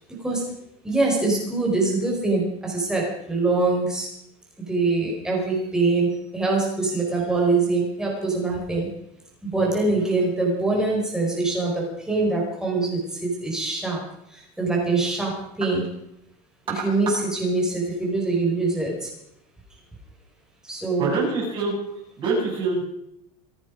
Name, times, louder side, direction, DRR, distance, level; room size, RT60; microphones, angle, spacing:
voice 1, 0.8-4.1 4.7-8.9 9.4-14.0 14.3-15.9 16.8-19.1 20.6-21.2, right 3 dB, 5° right, -2 dB, 4.9 m, -24 dB
voice 2, 21.0-21.7 22.2-22.8, right 3 dB, 25° right, -4 dB, 7.9 m, -24 dB
27.0 x 9.6 x 5.2 m, 0.81 s
supercardioid pair, 175°, 20 cm